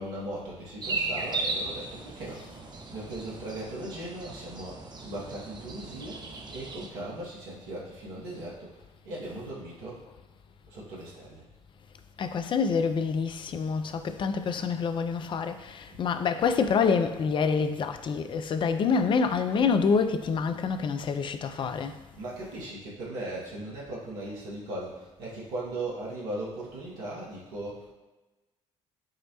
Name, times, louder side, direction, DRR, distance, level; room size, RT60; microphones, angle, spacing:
voice 1, 0.0-2.4 2.9-6.2 6.5-8.7 9.0-10.0 10.7-11.4 15.9-16.0 20.5-20.6 22.2-27.9, right 1 dB, 70° right, 1.0 m, -38 dB
sound 1, 0.8-6.9, right 3 dB, 25° right, 0.6 m, -36 dB
voice 2, 12.2-22.0, left 5 dB, 30° left, 0.3 m, -27 dB
6.2 x 2.1 x 2.8 m
figure-of-eight pair, 50°, 17 cm